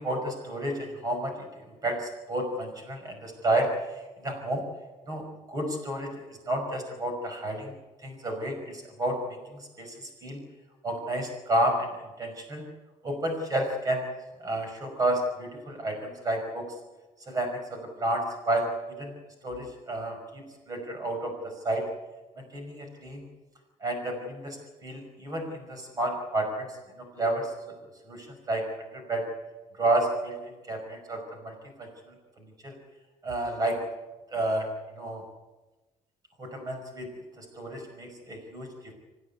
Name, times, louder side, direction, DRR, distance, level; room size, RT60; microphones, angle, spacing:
voice 1, 0.0-1.5 1.8-4.7 5.1-7.7 8.0-10.4 10.8-12.7 13.0-14.1 14.4-16.7 17.3-19.1 19.4-21.9 22.4-23.2 23.8-27.8 28.1-29.3 29.8-32.8 33.2-33.8 34.3-34.7 35.0-35.2 36.4-38.9, right 1 dB, 30° right, 4 dB, 5.4 m, -31 dB
26.0 x 15.0 x 9.6 m, 1.1 s
cardioid pair, 150°, 13 cm